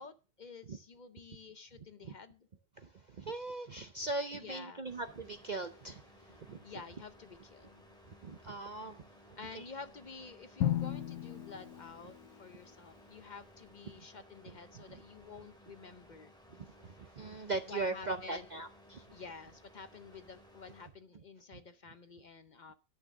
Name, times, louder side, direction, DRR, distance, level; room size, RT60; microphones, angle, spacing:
voice 1, 0.0-2.5 4.4-4.8 6.6-7.8 9.4-16.3 17.7-18.5 19.1-22.7, left 4 dB, 55° left, 0.5 m, -50 dB
voice 2, 2.8-6.6 8.2-9.0 9.5-9.7 14.7-15.0 16.6-19.2 21.5-21.6, right 2 dB, 60° right, 0.4 m, -40 dB
sound 1, 4.9-20.9, left 1 dB, ahead, 2.6 m, -60 dB
Drum, 10.6-12.6, left 11 dB, 85° left, 1.4 m, -35 dB
11.0 x 6.7 x 6.3 m
omnidirectional pair, 1.7 m